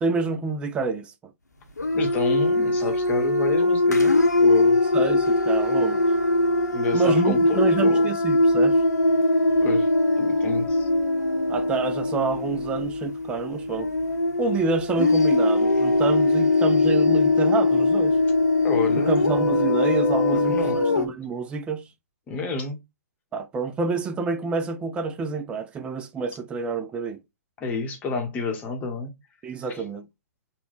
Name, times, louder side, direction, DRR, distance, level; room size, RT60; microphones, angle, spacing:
voice 1, 0.0-1.1 4.9-6.0 6.9-8.8 11.5-13.9 14.4-18.2 19.1-21.8 23.3-27.2 29.4-30.1, right 4 dB, 10° right, 0.4 m, -28 dB
sound 1, 1.8-21.1, left 2 dB, 80° left, 0.9 m, -21 dB
voice 2, 1.9-4.9 6.7-8.1 9.6-9.9 10.2-10.9 18.6-19.2 20.3-20.8 22.3-22.8 27.6-29.1 29.7-29.9, left 4 dB, 15° left, 0.9 m, -30 dB
3.6 x 2.2 x 3.8 m
figure-of-eight pair, 125°, 9 cm